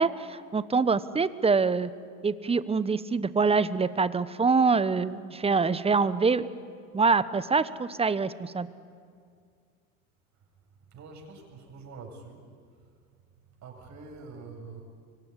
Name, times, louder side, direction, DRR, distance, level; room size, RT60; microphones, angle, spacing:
voice 1, 0.0-1.9 2.2-6.5 6.9-8.7, right 4 dB, 15° right, 15 dB, 1.1 m, -25 dB
voice 2, 10.9-12.4 13.4-14.8, right 4 dB, 40° right, 2 dB, 7.9 m, -45 dB
25.0 x 24.0 x 10.0 m, 2.2 s
hypercardioid pair, 90°, 42 cm